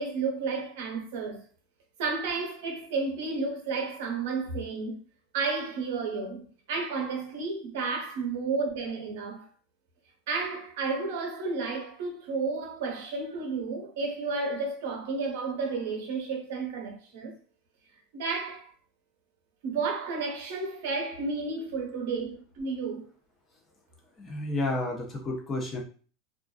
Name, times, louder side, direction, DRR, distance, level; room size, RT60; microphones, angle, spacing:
voice 1, 0.0-1.4 2.0-5.0 5.3-9.5 10.3-17.3 18.1-18.7 19.6-23.1, right 4 dB, 75° right, 0.8 m, -32 dB
voice 2, 24.2-25.8, left 2 dB, 25° left, 0.8 m, -31 dB
2.5 x 2.2 x 2.3 m
supercardioid pair, 130°, 0 cm